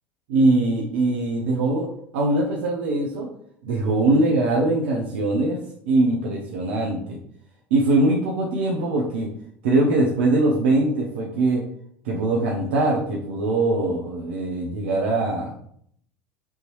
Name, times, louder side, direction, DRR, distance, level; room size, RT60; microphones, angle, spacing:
voice 1, 0.3-1.9 2.1-3.3 3.6-5.6 5.9-7.2 7.7-9.3 9.6-11.6 12.0-15.5, right 2 dB, 70° right, -2 dB, 0.8 m, -22 dB
5.6 x 3.1 x 3.0 m, 0.66 s
hypercardioid pair, 75°, 6 cm